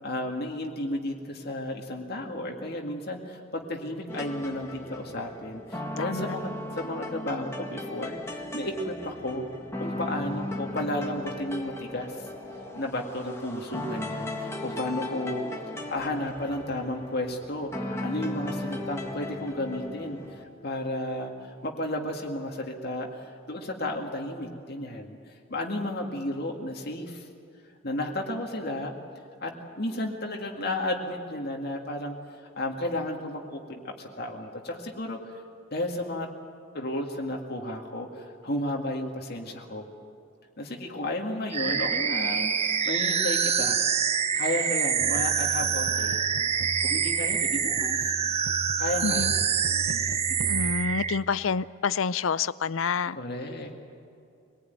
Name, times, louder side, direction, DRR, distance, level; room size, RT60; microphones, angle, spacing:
voice 1, 0.0-9.5 9.8-12.3 12.7-15.5 15.9-20.2 20.6-25.2 25.5-27.3 27.8-28.9 29.4-32.2 32.6-35.2 35.7-36.3 36.7-39.9 40.6-43.8 44.3-46.2 46.8-48.1 48.8-50.2 50.5-50.6 53.1-53.8, left 1 dB, 50° left, 2.1 m, -33 dB
sound 1, 4.1-20.4, left 1 dB, 15° left, 1.9 m, -37 dB
voice 2, 6.0-6.3 49.0-49.3 50.5-53.2, left 5 dB, 80° left, 0.5 m, -28 dB
sound 2, 41.5-51.2, right 7 dB, 30° right, 0.8 m, -26 dB
sound 3, 45.0-51.6, right 4 dB, 75° right, 0.6 m, -39 dB
25.0 x 19.0 x 9.4 m
head